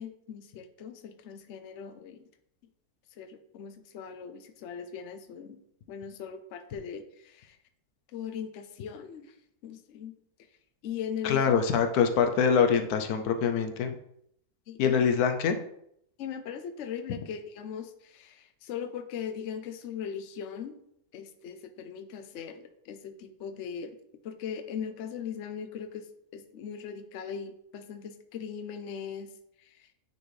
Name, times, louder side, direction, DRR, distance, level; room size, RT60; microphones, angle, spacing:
voice 1, 0.0-2.3 3.1-5.6 5.9-7.6 8.1-9.3 9.6-10.1 10.8-11.4 14.7-15.1 16.2-20.8 21.1-24.0 24.2-29.3 29.6-29.9, left 7 dB, 60° left, 8 dB, 0.9 m, -39 dB
voice 2, 11.2-13.9 14.8-15.5, left 6 dB, 80° left, 7 dB, 1.2 m, -24 dB
9.4 x 4.3 x 3.2 m, 0.74 s
omnidirectional pair, 1.6 m